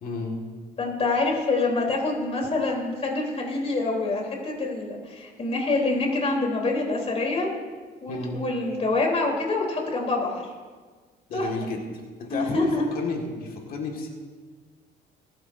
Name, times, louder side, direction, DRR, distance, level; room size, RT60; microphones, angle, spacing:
voice 1, 0.0-0.4 8.1-8.4 11.3-11.8 12.2-12.7 12.9-14.1, left 4 dB, 60° left, 1 dB, 1.9 m, -32 dB
voice 2, 0.8-7.5 8.0-10.5 11.3-11.7 12.3-12.9, left 3 dB, 35° left, -1 dB, 3.6 m, -26 dB
20.0 x 11.5 x 2.7 m, 1.5 s
cardioid pair, 110°, 17 cm